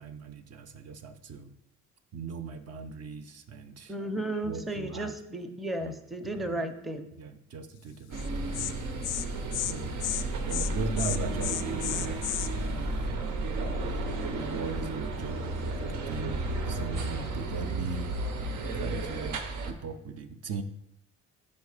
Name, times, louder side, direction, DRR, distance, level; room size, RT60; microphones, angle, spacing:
voice 1, 0.0-1.5 2.1-3.9 4.4-5.2 5.8-6.0 6.4-6.7 7.2-9.2 9.6-9.9 10.4-12.3 12.7-13.5 13.8-16.4 16.7-18.2 18.7-20.6, right 5 dB, 55° right, 8 dB, 0.6 m, -39 dB
voice 2, 3.9-7.1, right 1 dB, ahead, 6 dB, 0.6 m, -34 dB
sound 1, 8.1-19.7, right 2 dB, 90° right, 0.8 m, -33 dB
Insect, 8.2-8.3 8.5-8.7 9.0-9.2 9.5-9.7 10.0-10.2 10.5-10.7 11.0-12.5, left 14 dB, 85° left, 0.5 m, -32 dB
5.3 x 4.3 x 4.9 m, 0.86 s
cardioid pair, 90°, 30 cm